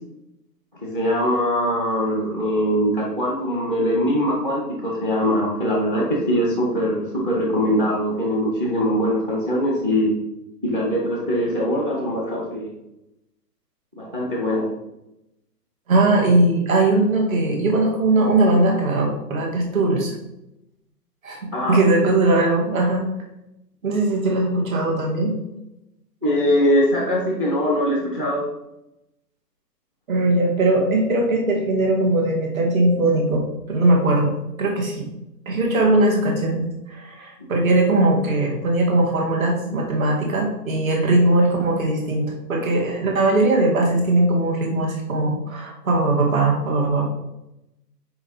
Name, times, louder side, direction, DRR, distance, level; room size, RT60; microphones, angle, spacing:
voice 1, 0.8-10.1 10.6-12.7 14.0-14.7 21.5-21.8 26.2-28.4, equal, 20° right, -2 dB, 0.6 m, -22 dB
voice 2, 15.9-20.1 21.2-23.0 23.8-25.4 30.1-34.3 34.6-35.1 35.5-47.1, right 2 dB, 55° right, 0 dB, 2.1 m, -20 dB
6.1 x 4.8 x 4.0 m, 0.89 s
hypercardioid pair, 175°, 50 cm